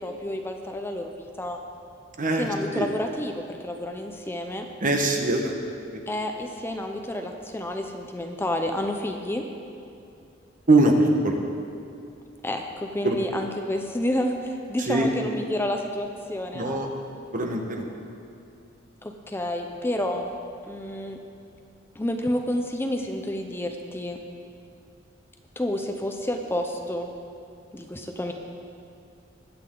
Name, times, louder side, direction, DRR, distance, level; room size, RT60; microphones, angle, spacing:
voice 1, 0.0-1.6 2.3-4.7 6.1-9.4 12.4-16.8 19.0-20.3 20.7-21.2 21.9-24.2 25.6-27.1 27.7-28.3, left 1 dB, 10° left, 3 dB, 0.6 m, -30 dB
voice 2, 2.2-2.5 2.7-2.9 4.8-5.5 10.7-11.4 13.0-13.2 14.9-15.1 16.5-16.9 17.3-17.8, right 2 dB, 45° right, 2 dB, 1.3 m, -22 dB
19.5 x 8.7 x 3.9 m, 2.6 s
head